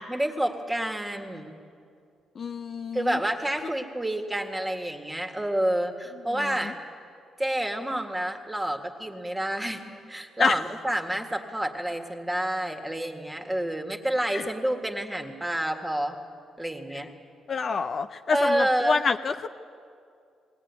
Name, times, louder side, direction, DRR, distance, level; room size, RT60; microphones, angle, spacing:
voice 1, 0.1-1.6 2.9-6.8 7.4-9.8 10.1-16.2 16.6-17.1 18.3-19.0, right 1 dB, 10° right, 4 dB, 1.9 m, -29 dB
voice 2, 2.4-3.2 10.4-10.6 14.3-14.4 17.5-19.5, left 5 dB, 45° left, 7 dB, 0.5 m, -27 dB
20.5 x 18.0 x 9.6 m, 2.4 s
cardioid pair, 115°, 0 cm